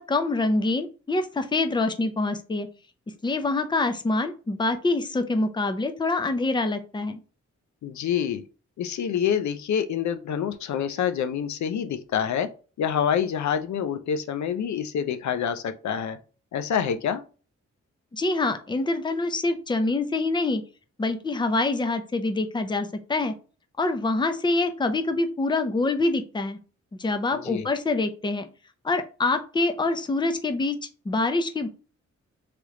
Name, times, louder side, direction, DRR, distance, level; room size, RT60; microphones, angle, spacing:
voice 1, 0.0-2.7 3.2-7.2 18.1-20.6 21.0-23.3 23.8-26.6 27.0-28.5 28.8-30.8 31.0-31.7, left 2 dB, 15° left, 8 dB, 0.5 m, -25 dB
voice 2, 7.8-8.4 8.8-12.5 12.8-16.2 16.5-17.2 27.4-27.7, left 8 dB, 75° left, 10 dB, 0.5 m, -27 dB
3.3 x 3.0 x 3.6 m, 0.37 s
cardioid pair, 80°, 29 cm